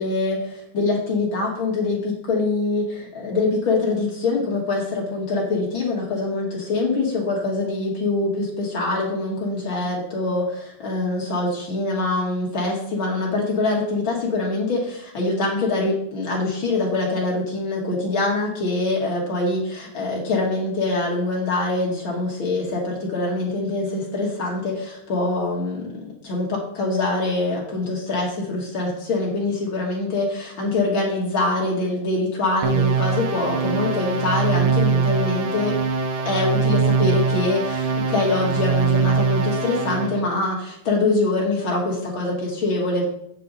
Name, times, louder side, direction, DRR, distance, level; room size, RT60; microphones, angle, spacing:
voice 1, 0.0-30.3 30.6-35.7 36.2-43.1, left 2 dB, 65° left, -3 dB, 1.2 m, -24 dB
sound 1, 32.6-40.2, right 5 dB, 75° right, 1.8 m, -22 dB
8.4 x 7.5 x 4.0 m, 0.74 s
omnidirectional pair, 4.7 m